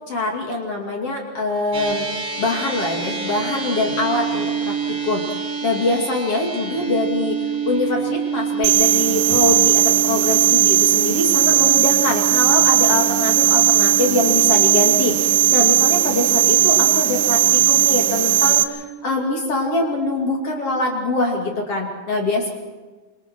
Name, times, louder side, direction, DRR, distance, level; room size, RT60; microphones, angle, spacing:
voice 1, 0.1-2.1 2.4-22.5, left 2 dB, 40° left, 1 dB, 2.6 m, -23 dB
sound 1, 1.7-20.3, right 7 dB, 35° right, 2.8 m, -28 dB
sound 2, 8.6-18.6, right 11 dB, 70° right, 2.4 m, -17 dB
26.5 x 26.5 x 4.6 m, 1.3 s
omnidirectional pair, 5.6 m